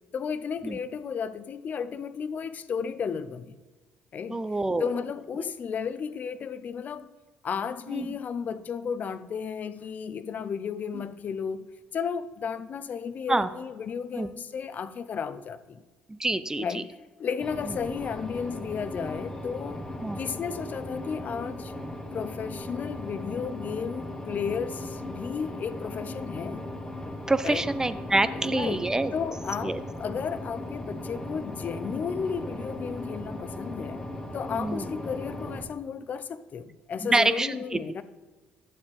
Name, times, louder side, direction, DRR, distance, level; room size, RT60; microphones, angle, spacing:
voice 1, 0.1-3.6 4.1-4.4 4.8-7.1 7.4-11.7 11.9-15.8 16.6-16.9 17.2-19.8 20.1-21.7 22.1-26.6 27.4-27.7 28.3-34.1 34.3-38.0, left 6 dB, 50° left, 0.5 m, -33 dB
voice 2, 4.3-4.9 5.4-5.5 7.9-8.1 13.3-13.5 14.1-14.3 16.1-16.8 20.0-20.2 27.3-29.1 29.6-29.8 34.5-34.9 37.0-38.0, right 2 dB, 15° right, 0.6 m, -27 dB
sound 1, 17.4-35.6, left 1 dB, 20° left, 1.8 m, -37 dB
11.0 x 7.2 x 3.3 m
hypercardioid pair, 60°, 4 cm